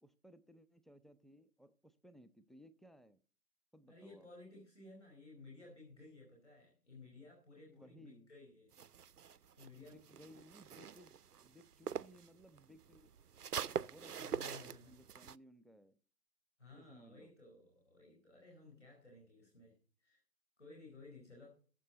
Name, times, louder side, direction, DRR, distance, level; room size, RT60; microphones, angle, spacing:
voice 1, 0.0-3.2 3.7-4.3 7.7-8.3 9.7-13.1 13.6-16.0 16.7-17.3, equal, ahead, 12 dB, 0.5 m, -61 dB
voice 2, 3.9-8.7 9.6-10.0 14.1-15.0 16.6-19.7 20.0-20.2 20.6-21.5, left 2 dB, 45° left, -1 dB, 4.4 m, -57 dB
sound 1, 8.7-12.3 12.6-15.4, right 7 dB, 70° right, 0.5 m, -44 dB
19.0 x 7.5 x 4.0 m, 0.42 s
figure-of-eight pair, 180°, 48 cm